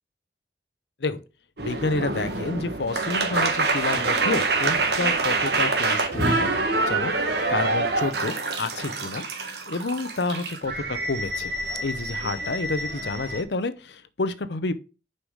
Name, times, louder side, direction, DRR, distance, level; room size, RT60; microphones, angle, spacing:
voice 1, 1.6-9.2 9.7-11.5 11.8-14.7, left 3 dB, 75° left, 0.7 m, -29 dB
sound 1, 1.6-13.4, right 3 dB, 70° right, 1.6 m, -26 dB
6.6 x 5.6 x 4.8 m
head